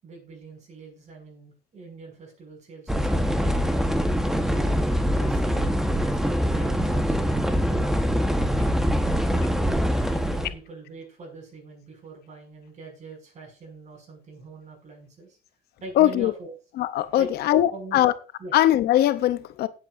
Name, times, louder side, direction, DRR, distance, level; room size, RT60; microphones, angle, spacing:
voice 1, 0.0-3.8 4.4-8.0 8.5-9.5 10.1-15.4 15.8-16.5 17.2-18.1 18.4-18.5, right 3 dB, 45° right, 6.0 m, -43 dB
sound 1, 2.9-10.5, equal, ahead, 1.1 m, -23 dB
voice 2, 16.0-16.3 16.8-18.1 18.5-19.7, left 13 dB, 70° left, 0.7 m, -21 dB
18.0 x 8.2 x 2.5 m
cardioid pair, 110°, 17 cm